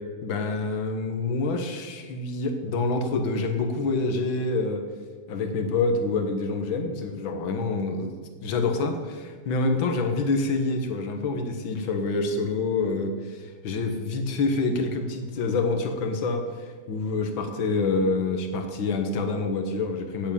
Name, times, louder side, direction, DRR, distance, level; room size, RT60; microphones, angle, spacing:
voice 1, 0.2-4.8 5.3-8.1 8.4-16.4 16.9-20.3, left 3 dB, 55° left, 5 dB, 1.6 m, -27 dB
8.5 x 8.0 x 8.9 m, 1.5 s
omnidirectional pair, 3.3 m